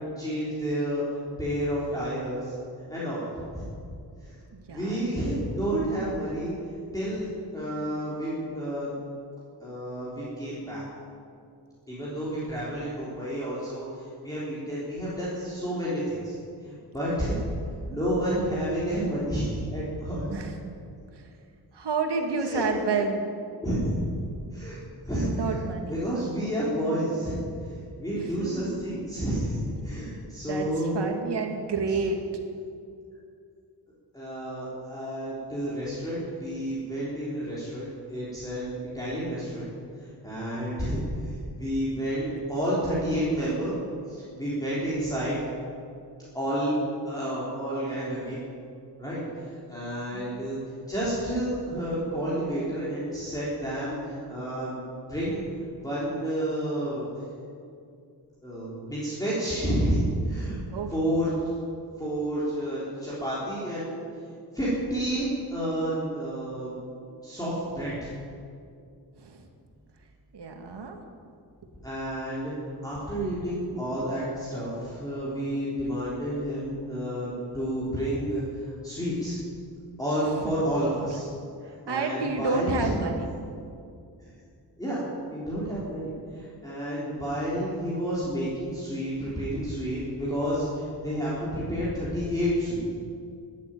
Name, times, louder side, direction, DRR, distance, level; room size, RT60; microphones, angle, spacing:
voice 1, 0.0-2.5 2.9-3.2 3.5-3.6 4.2-4.3 4.7-6.5 6.9-8.9 9.6-10.8 11.9-16.3 16.6-17.4 17.9-20.3 22.4-22.7 23.6-24.0 24.5-24.8 25.1-25.3 25.9-27.4 28.0-29.6 29.8-31.0 34.1-39.7 40.2-43.7 44.1-45.4 46.3-46.8 47.1-48.4 49.0-50.6 50.9-54.8 55.1-55.4 55.8-57.1 58.4-60.0 60.3-60.6 60.9-61.3 62.0-64.1 64.5-66.7 67.2-68.1 71.8-72.5 72.8-79.4 80.0-81.3 81.7-83.0 84.8-93.0, equal, 10° left, -9 dB, 3.8 m, -30 dB
voice 2, 4.5-5.1 20.3-20.8 21.1-21.3 21.7-23.3 25.2-26.0 28.1-28.8 30.5-32.2 50.1-50.3 60.7-60.9 69.2-69.5 70.3-71.0 80.3-80.5 81.6-83.3, right 4 dB, 75° right, 3 dB, 2.1 m, -30 dB
14.0 x 10.5 x 9.0 m, 2.4 s
wide cardioid pair, 135°, 41 cm